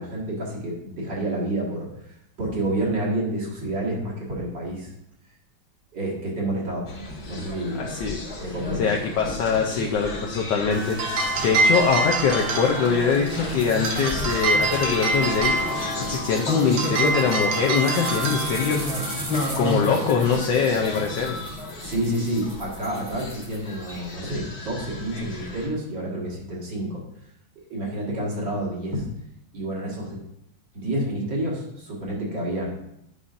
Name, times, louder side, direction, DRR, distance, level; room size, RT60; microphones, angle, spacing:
voice 1, 0.0-4.9 5.9-6.9 7.3-7.9 8.4-9.0 9.8-9.9 21.8-27.0 27.6-29.0 29.5-30.2 30.7-32.7, right 1 dB, 60° right, -5 dB, 2.4 m, -29 dB
sound 1, 6.9-25.7, left 2 dB, 50° left, 2.0 m, -33 dB
voice 2, 7.8-8.2 8.8-18.8 19.6-21.4, left 6 dB, 70° left, 0 dB, 1.2 m, -23 dB
sound 2, 10.7-21.1, right 2 dB, 85° right, 1.8 m, -27 dB
sound 3, 13.6-24.1, right 1 dB, 40° right, 0.4 m, -38 dB
9.8 x 5.5 x 2.5 m, 0.83 s
omnidirectional pair, 2.3 m